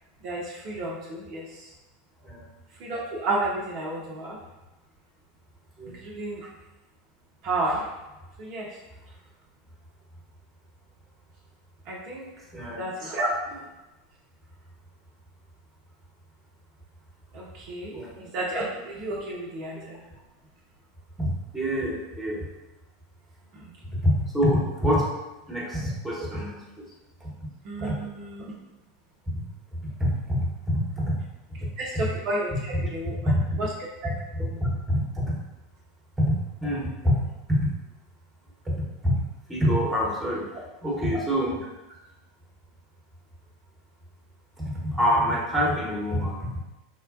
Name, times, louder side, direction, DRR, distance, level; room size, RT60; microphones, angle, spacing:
voice 1, 0.2-1.7 2.8-4.4 5.9-6.5 7.4-7.9 8.4-8.7 11.9-12.3 12.7-13.3 17.3-20.0 23.5-23.7 27.6-28.5 31.8-33.1 33.6-33.7 34.0-34.1 34.4-34.6, right 2 dB, 45° right, -3 dB, 0.5 m, -31 dB
voice 2, 21.2-22.4 24.0-25.1 25.5-26.5 27.2-27.3 30.0-31.2 31.6-31.7 33.2-33.4 34.6-35.3 36.2-36.3 36.6-37.2 37.5-37.6 38.6-39.2 39.5-40.5 40.8-41.6 44.6-46.6, equal, 10° right, -4 dB, 1.0 m, -25 dB
4.4 x 2.1 x 2.4 m, 1.0 s
figure-of-eight pair, 80°, 0 cm